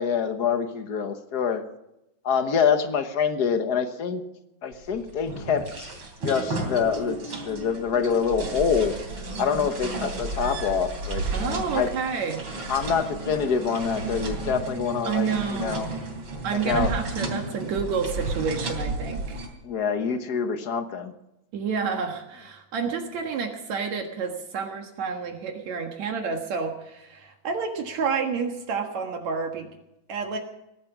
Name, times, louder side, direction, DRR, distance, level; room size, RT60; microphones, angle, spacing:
voice 1, 0.0-1.6 2.2-4.2 4.6-6.0 6.2-9.0 9.4-11.9 12.7-15.9 16.5-16.9 19.6-21.1, left 6 dB, 65° left, 8 dB, 1.0 m, -26 dB
sound 1, 4.7-19.5, right 2 dB, 45° right, 3.9 m, -33 dB
voice 2, 11.3-12.4 15.0-15.9 16.4-19.5 21.5-29.7 30.1-30.4, right 5 dB, 70° right, 3 dB, 2.8 m, -29 dB
19.5 x 12.0 x 6.0 m, 0.87 s
omnidirectional pair, 3.4 m